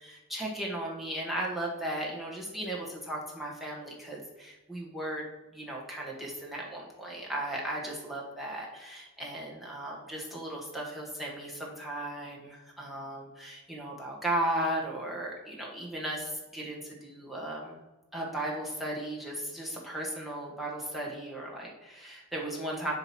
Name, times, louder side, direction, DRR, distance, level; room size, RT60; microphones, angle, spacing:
voice 1, 0.0-5.2 5.5-17.8 18.1-22.9, right 1 dB, ahead, -4 dB, 1.4 m, -36 dB
7.5 x 3.1 x 5.9 m, 1.1 s
head